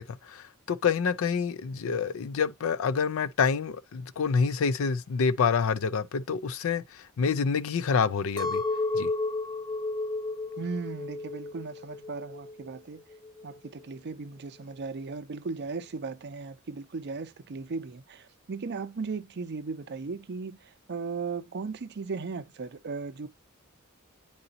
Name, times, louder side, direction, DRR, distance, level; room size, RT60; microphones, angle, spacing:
voice 1, 0.0-8.6 8.9-9.1, left 5 dB, 70° left, 0.4 m, -27 dB
Chink clink, 8.4-12.7 13.1-13.7, left 3 dB, 20° left, 1.0 m, -32 dB
voice 2, 10.6-13.0 13.4-20.6 20.9-23.3, right 4 dB, 50° right, 0.5 m, -36 dB
8.7 x 4.0 x 2.7 m
head